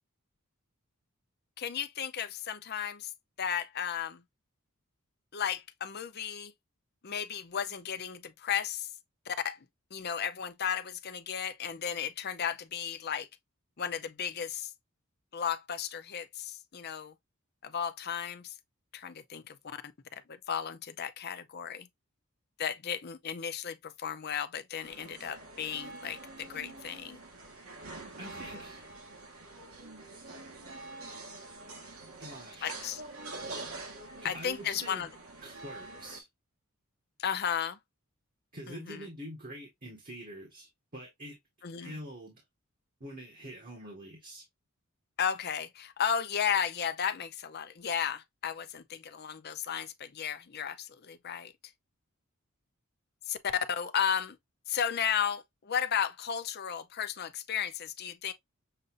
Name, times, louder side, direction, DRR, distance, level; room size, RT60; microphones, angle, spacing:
voice 1, 1.6-3.1 3.4-4.2 5.3-6.5 7.0-8.9 9.3-9.7 9.9-13.3 13.8-14.7 15.3-17.1 17.6-18.5 18.9-19.8 20.3-21.9 22.6-27.2 32.6-33.0 34.2-35.1 37.2-37.8 38.7-39.1 41.6-42.0 45.2-51.5 53.3-54.4 54.7-58.3, left 8 dB, 50° left, 0.6 m, -34 dB
sound 1, 24.8-36.2, right 2 dB, 75° right, 1.5 m, -46 dB
voice 2, 28.2-28.9 32.2-32.7 34.2-35.1 35.4-36.3 38.5-41.4 41.8-42.4 43.0-44.4, right 1 dB, 40° right, 1.5 m, -45 dB
6.6 x 2.6 x 2.5 m
head